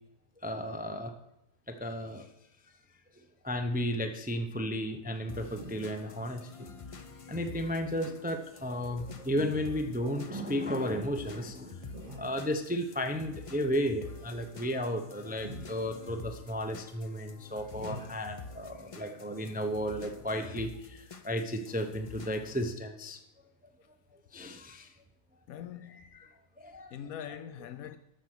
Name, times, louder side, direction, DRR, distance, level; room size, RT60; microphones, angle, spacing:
voice 1, 0.4-1.1 1.7-2.2 3.4-6.7 7.3-23.2 24.3-24.9 25.9-26.3 26.6-27.0 27.3-27.4, equal, 10° right, 0.5 m, -34 dB
sound 1, 4.5-20.4, equal, 25° right, 2.6 m, -51 dB
sound 2, 5.3-22.7, left 4 dB, 45° left, 0.4 m, -48 dB
voice 2, 25.5-26.2 26.9-28.0, left 9 dB, 85° left, 1.1 m, -43 dB
13.0 x 6.5 x 6.1 m
omnidirectional pair, 1.5 m